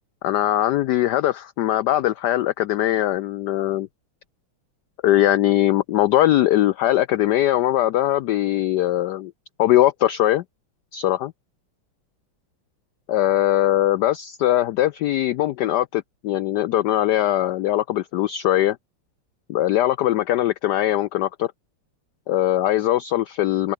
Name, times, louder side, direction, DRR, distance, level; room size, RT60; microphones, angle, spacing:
voice 1, 0.2-3.9 5.0-9.3 9.6-10.4 10.9-11.3 13.1-18.8 19.5-21.5 22.3-23.7, left 13 dB, 90° left, 0.9 m, -21 dB
open air
omnidirectional pair, 2.4 m